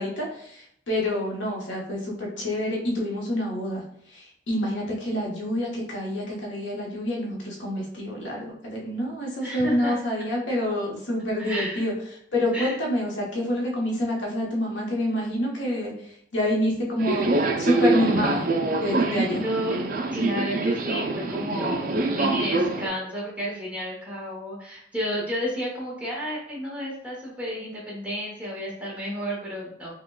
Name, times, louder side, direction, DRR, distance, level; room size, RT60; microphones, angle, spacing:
voice 1, 0.0-11.9 12.3-18.5 18.8-19.4, left 1 dB, 90° left, -3 dB, 1.0 m, -27 dB
voice 2, 9.4-10.0 11.4-11.8 12.5-12.7 19.3-19.8 20.1-29.9, equal, 10° right, -5 dB, 1.0 m, -31 dB
Subway metro underground, 17.0-22.9, right 2 dB, 50° right, 0.4 m, -25 dB
4.9 x 2.2 x 2.3 m, 0.67 s
head